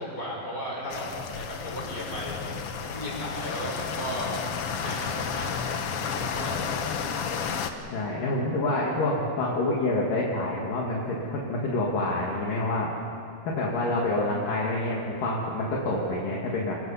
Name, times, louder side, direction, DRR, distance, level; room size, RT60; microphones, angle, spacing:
voice 1, 0.0-4.3 4.8-5.5 5.9-6.6, equal, 20° left, -4 dB, 7.2 m, -35 dB
sound 1, 0.9-7.7, left 6 dB, 90° left, 1.3 m, -32 dB
voice 2, 7.9-12.9 13.5-16.7, left 2 dB, 60° left, -3 dB, 3.5 m, -27 dB
28.5 x 22.5 x 5.7 m, 2.6 s
omnidirectional pair, 4.5 m